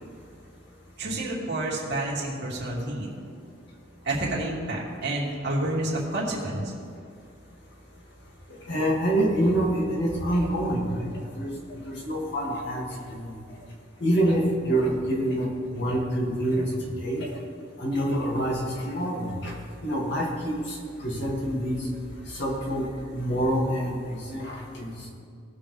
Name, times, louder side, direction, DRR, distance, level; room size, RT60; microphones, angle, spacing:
voice 1, 1.0-3.1 4.0-6.7, right 1 dB, 55° right, -5 dB, 2.8 m, -29 dB
voice 2, 8.7-11.1 11.4-11.5 11.8-12.8 13.1-13.3 14.0-16.6 17.0-17.3 17.8-19.5 19.8-20.6 21.0-21.8 22.3-22.9 23.1-25.1, right 1 dB, 60° left, -3 dB, 2.3 m, -26 dB
20.0 x 7.1 x 3.4 m, 2.2 s
head